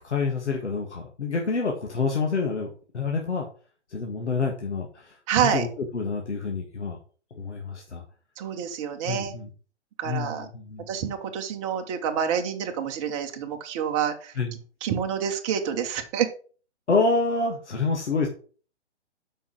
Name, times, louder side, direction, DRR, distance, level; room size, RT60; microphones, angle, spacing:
voice 1, 0.0-3.5 3.9-5.1 5.4-5.7 5.9-7.0 7.3-8.0 9.0-9.5 10.0-10.9 14.4-14.5 16.9-18.3, left 4 dB, 75° left, 0 dB, 1.8 m, -27 dB
voice 2, 5.3-5.7 8.4-9.3 10.0-10.5 10.9-14.4 14.8-16.3, right 8 dB, 25° right, 4 dB, 1.2 m, -27 dB
7.6 x 5.6 x 5.0 m, 0.40 s
figure-of-eight pair, 130°, 35 cm